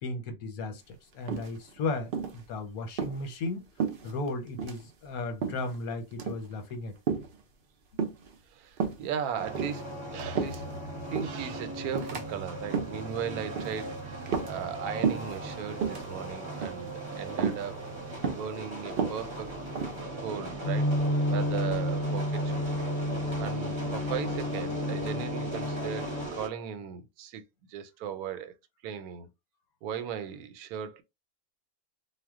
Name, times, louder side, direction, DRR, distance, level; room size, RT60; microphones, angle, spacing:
voice 1, 0.0-3.6 4.0-6.9 7.9-8.0, left 3 dB, 80° left, 1.2 m, -35 dB
sound 1, 1.3-1.8 2.1-2.4 2.9-3.2 3.8-4.3 4.6-4.8 5.4-5.8 6.1-6.5 7.1-7.4 8.0-8.3 8.8-9.0 9.5-10.8 11.1-11.4 11.9-12.2 12.6-13.0 13.6-13.8 14.3-14.8 15.0-15.4 15.7-16.1 16.6-16.9 17.4-17.6 18.2-18.5 18.9-20.0, right 6 dB, 70° right, 0.5 m, -31 dB
voice 2, 8.5-10.7 11.1-17.8 18.3-19.5 20.2-20.9 21.3-22.8 23.4-27.4 27.7-28.5 28.8-29.3 29.8-31.0, right 8 dB, 90° right, 1.1 m, -37 dB
sound 2, 9.3-26.5, right 2 dB, 25° right, 0.7 m, -39 dB
sound 3, 20.6-26.3, left 1 dB, 65° left, 0.8 m, -30 dB
2.3 x 2.1 x 3.5 m
omnidirectional pair, 1.5 m